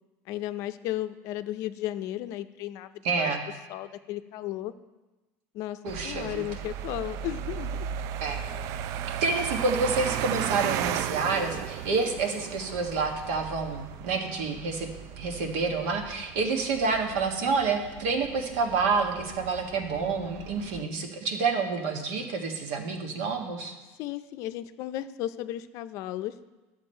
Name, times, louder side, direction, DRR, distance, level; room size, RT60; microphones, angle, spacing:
voice 1, 0.3-2.9 3.2-3.3 3.7-4.7 5.5-5.8 6.0-7.9 24.0-26.3, left 13 dB, 55° left, 11 dB, 0.5 m, -34 dB
voice 2, 3.0-3.4 5.8-6.4 8.2-8.4 9.2-14.9 15.2-23.7, right 4 dB, 80° right, 3 dB, 1.5 m, -28 dB
sound 1, 5.9-20.8, right 10 dB, 55° right, 0.4 m, -36 dB
11.5 x 7.0 x 4.4 m, 1.1 s
cardioid pair, 140°, 6 cm